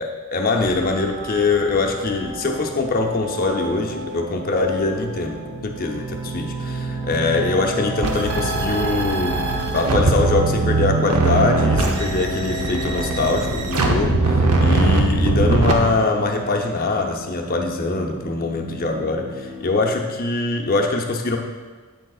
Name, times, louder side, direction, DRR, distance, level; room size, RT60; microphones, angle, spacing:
voice 1, 0.0-9.4 9.7-21.4, left 3 dB, 40° left, 3 dB, 0.6 m, -23 dB
sound 1, 0.6-19.7, right 1 dB, 35° right, 2.0 m, -32 dB
sound 2, 8.0-15.7, right 3 dB, 85° right, 0.7 m, -20 dB
8.4 x 6.3 x 2.4 m, 1.4 s
head